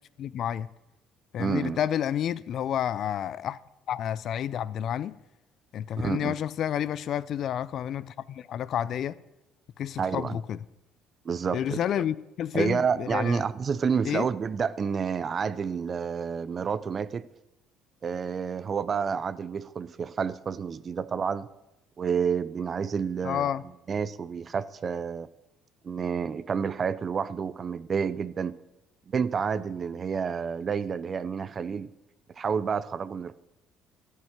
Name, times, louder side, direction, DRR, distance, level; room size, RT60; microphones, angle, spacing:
voice 1, 0.2-0.7 1.3-3.6 3.9-5.1 5.7-9.1 9.8-10.6 11.5-13.4 14.0-14.3 23.2-23.6, left 10 dB, 60° left, 0.4 m, -30 dB
voice 2, 1.4-1.8 6.0-6.4 10.0-10.4 11.2-11.8 12.5-17.3 18.0-21.5 22.0-23.5 23.9-25.3 25.8-28.6 29.1-31.9 32.4-33.4, right 6 dB, 40° right, 0.5 m, -29 dB
12.5 x 5.5 x 7.3 m
supercardioid pair, 85°, 0 cm